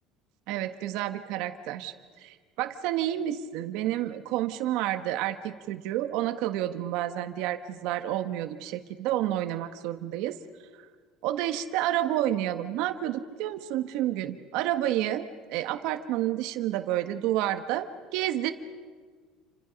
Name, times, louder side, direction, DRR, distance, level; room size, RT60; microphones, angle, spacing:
voice 1, 0.5-10.4 11.2-18.5, right 13 dB, 65° right, 8 dB, 1.4 m, -30 dB
29.0 x 25.5 x 5.3 m, 1.5 s
cardioid pair, 165°, 0 cm